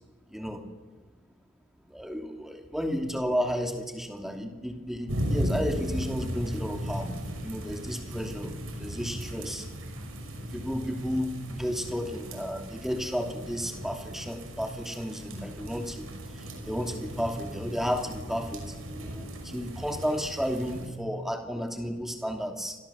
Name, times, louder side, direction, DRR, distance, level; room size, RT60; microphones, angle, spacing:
voice 1, 0.3-0.6 1.9-7.1 7.4-8.5 8.8-9.7 10.4-22.8, equal, ahead, 3 dB, 2.7 m, -33 dB
sound 1, 5.1-20.9, equal, 90° right, 5.7 m, -36 dB
29.5 x 24.5 x 7.3 m, 1.3 s
head